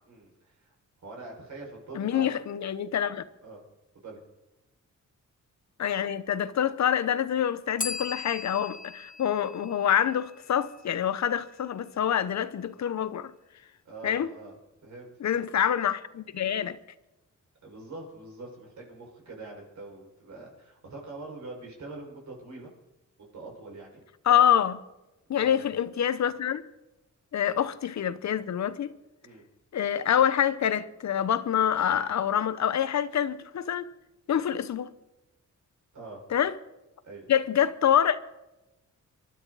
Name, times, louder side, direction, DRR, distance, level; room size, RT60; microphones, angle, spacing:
voice 1, 0.1-0.7 1.0-2.3 3.4-3.6 3.9-4.2 13.8-14.5 14.8-15.4 17.6-22.7 23.2-24.0 25.3-25.7 27.5-27.6 29.2-29.4 35.9-36.2 37.0-37.3, right 3 dB, 70° right, 6.0 m, -44 dB
voice 2, 1.9-3.2 5.8-13.3 14.0-14.3 15.2-16.8 24.3-24.8 25.3-26.6 27.3-28.9 29.7-33.8 34.3-34.9 36.3-36.5 37.3-38.3, left 9 dB, 65° left, 1.0 m, -26 dB
Bell, 7.8-10.6, left 5 dB, 25° left, 0.9 m, -38 dB
27.5 x 12.5 x 4.1 m
wide cardioid pair, 120°, 30 cm